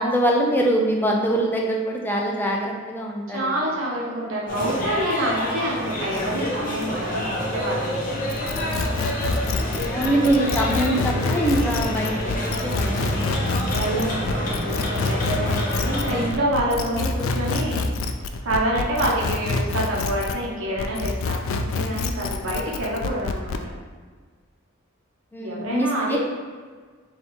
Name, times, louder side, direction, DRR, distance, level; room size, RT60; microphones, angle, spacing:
voice 1, 0.0-3.5 9.9-13.4 25.3-26.2, right 1 dB, 10° left, -1 dB, 0.5 m, -23 dB
voice 2, 3.3-8.0 13.5-17.9 18.4-23.6 25.4-26.2, right 1 dB, 70° right, -5 dB, 1.1 m, -27 dB
sound 1, 4.5-16.3, equal, 45° left, 0.8 m, -28 dB
sound 2, 8.3-20.5 20.8-23.6, left 3 dB, 70° left, 0.3 m, -27 dB
3.6 x 2.8 x 4.3 m, 1.5 s
head